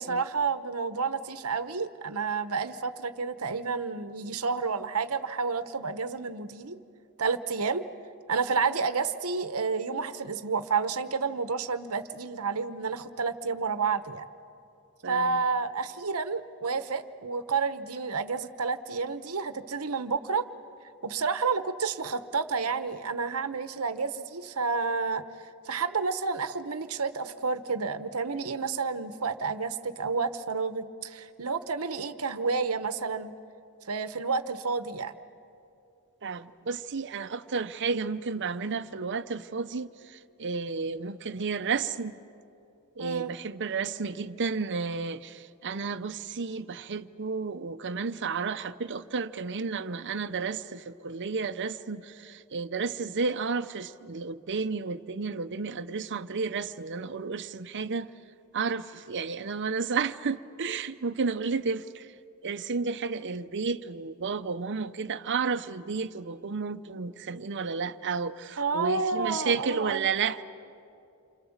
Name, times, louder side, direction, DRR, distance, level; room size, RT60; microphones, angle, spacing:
voice 1, 0.0-6.8 7.2-7.9 8.3-14.2 15.1-20.5 21.0-25.2 25.6-33.3 33.9-35.1 43.0-43.3 68.6-70.1, right 4 dB, 70° right, 1.0 m, -30 dB
voice 2, 15.0-15.4 36.2-42.1 43.0-58.1 58.5-62.1 62.4-70.4, right 5 dB, 55° right, 0.8 m, -32 dB
29.0 x 25.5 x 7.3 m
head